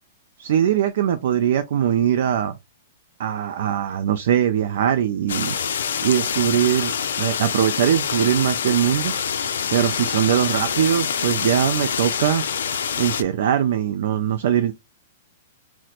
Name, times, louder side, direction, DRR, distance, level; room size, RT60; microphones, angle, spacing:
voice 1, 0.4-2.6 3.2-5.5 6.0-6.9 7.2-9.1 9.7-12.4 13.0-14.7, right 10 dB, 65° right, 0.3 m, -21 dB
sound 1, 5.3-13.2, left 7 dB, 85° left, 0.4 m, -26 dB
4.2 x 2.0 x 2.4 m
hypercardioid pair, 150°, 0 cm